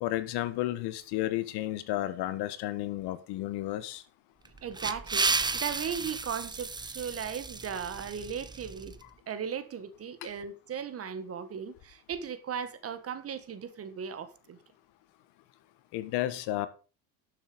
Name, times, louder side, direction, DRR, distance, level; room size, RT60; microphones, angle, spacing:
voice 1, 0.0-4.0 15.9-16.7, left 15 dB, 65° left, 1.5 m, -32 dB
sound 1, 4.4-9.0, right 4 dB, 10° right, 0.7 m, -33 dB
voice 2, 4.6-8.9 9.3-14.6, right 7 dB, 35° right, 1.6 m, -37 dB
12.5 x 7.3 x 5.1 m
cardioid pair, 130°, 42 cm